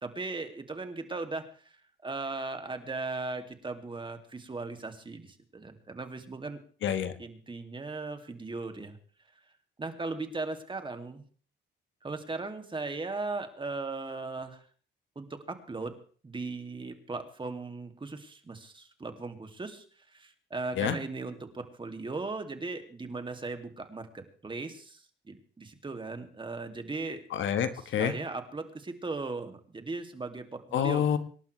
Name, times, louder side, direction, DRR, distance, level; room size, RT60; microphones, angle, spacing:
voice 1, 0.0-1.8 2.0-6.6 7.2-9.0 9.8-11.2 12.0-14.6 15.2-15.9 16.2-19.8 20.1-27.2 27.7-31.2, right 3 dB, 25° right, 6 dB, 2.4 m, -38 dB
voice 2, 6.8-7.1 20.8-20.9 27.3-28.1 30.7-31.2, left 8 dB, 70° left, 10 dB, 1.5 m, -27 dB
25.5 x 11.5 x 3.3 m, 0.44 s
cardioid pair, 90°, 20 cm